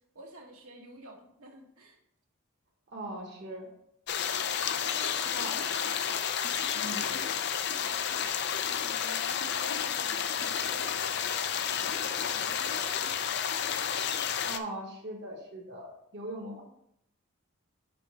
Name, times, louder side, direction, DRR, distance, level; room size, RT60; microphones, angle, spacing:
voice 1, 0.1-2.0 4.8-6.1 6.8-7.3 7.9-8.3 8.6-13.1, right 1 dB, 80° right, 0 dB, 1.5 m, -49 dB
voice 2, 2.9-3.7 5.3-5.5 6.7-7.0 14.4-16.6, right 1 dB, 50° right, -1 dB, 1.1 m, -40 dB
sound 1, 4.1-14.6, left 8 dB, 50° left, 0.5 m, -31 dB
5.3 x 5.2 x 5.4 m, 0.76 s
head